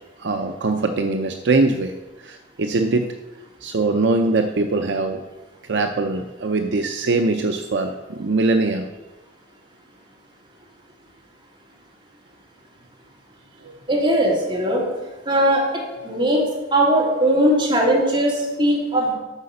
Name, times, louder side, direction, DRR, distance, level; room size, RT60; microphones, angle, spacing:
voice 1, 0.2-3.1 3.6-5.2 5.7-8.9 13.6-13.8, right 3 dB, 65° right, 5 dB, 0.5 m, -22 dB
voice 2, 13.9-14.8 15.2-15.6 16.0-16.4 16.7-19.1, right 1 dB, 25° right, -4 dB, 2.7 m, -19 dB
8.2 x 5.7 x 6.6 m, 1.1 s
head